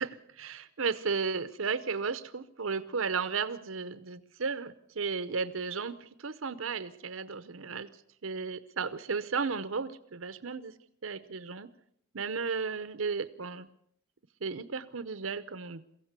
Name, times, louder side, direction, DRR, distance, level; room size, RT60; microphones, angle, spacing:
voice 1, 0.0-7.9 8.2-10.7 11.0-11.7 12.1-13.7 14.4-15.8, right 5 dB, 80° right, 13 dB, 0.8 m, -34 dB
23.0 x 16.0 x 8.1 m, 0.73 s
head